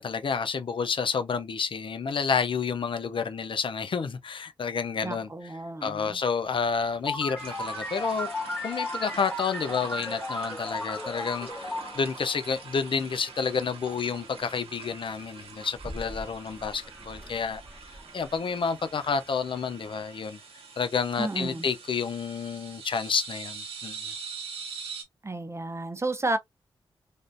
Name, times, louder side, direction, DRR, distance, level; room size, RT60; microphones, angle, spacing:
voice 1, 0.0-5.3 5.8-8.3 8.6-17.6 18.1-20.4 20.8-24.1, left 5 dB, 60° left, 0.5 m, -30 dB
voice 2, 5.0-6.2 21.2-21.7 25.2-26.4, right 2 dB, 30° right, 0.5 m, -32 dB
sound 1, 6.4-20.0, right 1 dB, 10° right, 1.0 m, -51 dB
sound 2, 7.1-13.3, left 2 dB, 10° left, 1.4 m, -35 dB
sound 3, 7.4-25.0, right 5 dB, 90° right, 0.8 m, -44 dB
3.3 x 2.5 x 2.5 m
cardioid pair, 45°, 10 cm